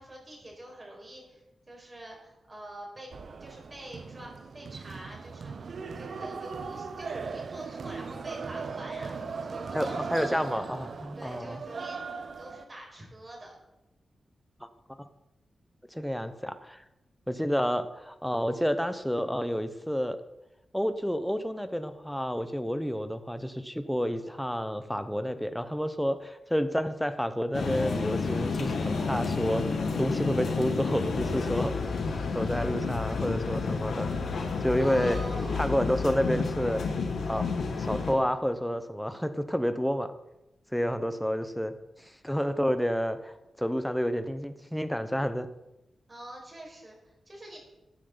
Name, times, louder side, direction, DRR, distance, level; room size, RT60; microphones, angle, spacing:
voice 1, 0.0-1.4 1.7-3.1 3.4-10.6 11.2-13.6 16.2-16.4 34.8-35.7 46.1-47.6, right 1 dB, 30° right, -2 dB, 5.5 m, -46 dB
sound 1, 3.1-12.6, right 5 dB, 65° right, 0.8 m, -38 dB
voice 2, 9.7-11.6 15.0-15.1 15.9-16.8 17.3-20.2 20.7-31.7 32.3-34.1 34.6-35.2 35.5-36.8 37.3-37.5 37.7-40.1 40.7-41.7 42.0-45.5, equal, ahead, 10 dB, 1.0 m, -29 dB
sound 2, 27.5-38.1, left 4 dB, 80° left, 1.9 m, -30 dB
15.0 x 10.0 x 4.1 m, 0.93 s
cardioid pair, 85°, 0 cm